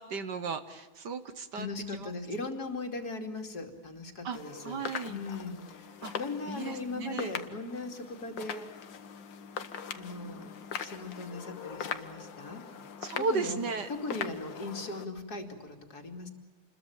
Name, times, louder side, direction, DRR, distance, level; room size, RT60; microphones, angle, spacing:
voice 1, 0.0-1.7 1.9-2.1 4.2-4.4 4.6-5.2 6.0-6.1 6.5-7.3 13.0-13.9, right 4 dB, 60° right, 10 dB, 1.7 m, -35 dB
voice 2, 1.5-4.8 5.1-8.7 9.9-10.5 10.8-12.6 13.2-13.6 13.9-16.3, left 3 dB, 50° left, 5 dB, 3.2 m, -39 dB
sound 1, 4.3-15.1, left 7 dB, 65° left, 2.0 m, -41 dB
28.5 x 21.5 x 7.2 m, 1.2 s
omnidirectional pair, 2.2 m